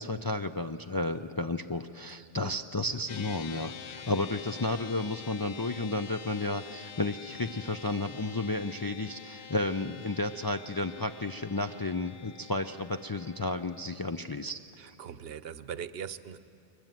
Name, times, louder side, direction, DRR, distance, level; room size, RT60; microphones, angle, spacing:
voice 1, 0.0-14.6 14.9-15.0, left 2 dB, 35° left, 6 dB, 0.4 m, -32 dB
sound 1, 3.1-13.9, left 8 dB, 70° left, 0.9 m, -47 dB
voice 2, 14.8-16.4, right 8 dB, 75° right, 14 dB, 0.9 m, -41 dB
22.0 x 21.0 x 9.2 m, 2.7 s
omnidirectional pair, 1.0 m